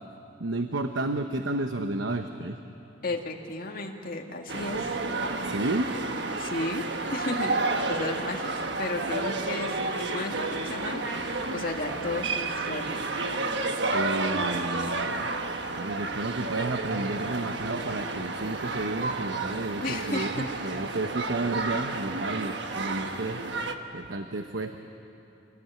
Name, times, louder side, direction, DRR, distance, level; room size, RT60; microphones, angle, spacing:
voice 1, 0.4-2.6 5.4-5.9 13.9-23.4 23.9-24.8, right 2 dB, 80° right, 7 dB, 1.0 m, -32 dB
voice 2, 3.0-5.0 6.4-6.9 7.1-7.6 7.9-13.0 19.8-20.3, left 2 dB, 50° left, 1 dB, 2.1 m, -34 dB
sound 1, 4.5-23.8, right 3 dB, 60° right, 1.4 m, -31 dB
27.0 x 19.0 x 9.2 m, 2.8 s
head